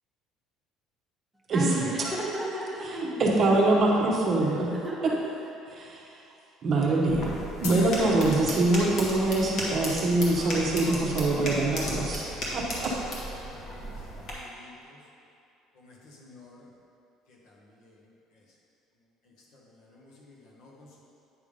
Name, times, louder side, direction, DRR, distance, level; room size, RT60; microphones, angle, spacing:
voice 1, 1.5-3.8 4.4-5.2, right 2 dB, 5° right, -5 dB, 1.1 m, -34 dB
voice 2, 3.2-4.7 5.8-6.0 6.6-12.3 12.5-12.9, right 2 dB, 35° right, -2 dB, 0.9 m, -24 dB
sound 1, 7.1-14.3, equal, 45° left, 1.5 m, -35 dB
sound 2, 7.6-9.3, left 5 dB, 80° left, 0.7 m, -41 dB
voice 3, 10.4-13.0 13.3-13.8 14.2-15.0 15.7-16.6 17.3-17.9 19.5-21.0, left 2 dB, 60° left, -3 dB, 1.3 m, -49 dB
9.1 x 3.6 x 5.1 m, 2.7 s
cardioid pair, 155°, 0 cm